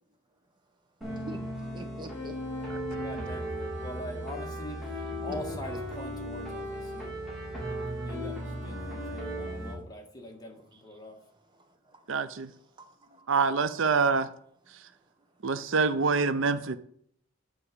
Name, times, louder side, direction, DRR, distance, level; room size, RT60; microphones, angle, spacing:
sound 1, 1.0-9.8, equal, ahead, 3.2 m, -36 dB
voice 1, 1.7-2.4 5.3-5.6 10.7-13.3 14.7-15.1, right 1 dB, 25° right, 1.0 m, -47 dB
voice 2, 2.6-7.1 8.0-11.2, left 1 dB, 20° left, 1.8 m, -43 dB
voice 3, 12.1-12.5 13.3-14.3 14.7-14.8 15.4-16.8, right 4 dB, 80° right, 0.6 m, -26 dB
9.1 x 4.8 x 7.0 m
head